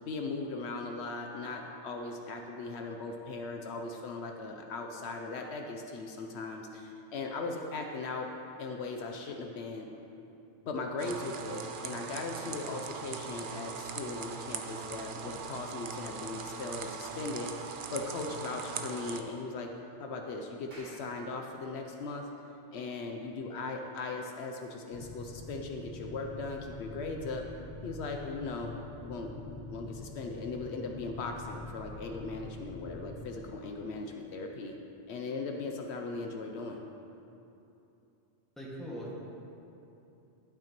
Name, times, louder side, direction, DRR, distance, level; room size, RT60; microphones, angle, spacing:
voice 1, 0.0-8.3 8.6-9.9 10.6-19.7 20.0-22.3 22.7-27.5 27.8-28.7 29.0-34.7 35.1-36.8, left 3 dB, 75° left, 3 dB, 0.9 m, -38 dB
sound 1, 11.0-19.2, right 6 dB, 55° right, 0.7 m, -40 dB
Clapping, 20.7-25.4, right 1 dB, 40° right, 2.2 m, -58 dB
sound 2, 24.9-34.5, left 3 dB, 50° left, 0.6 m, -46 dB
voice 2, 38.6-39.1, equal, ahead, -7 dB, 1.7 m, -40 dB
11.5 x 8.7 x 3.0 m, 2.9 s
omnidirectional pair, 1.2 m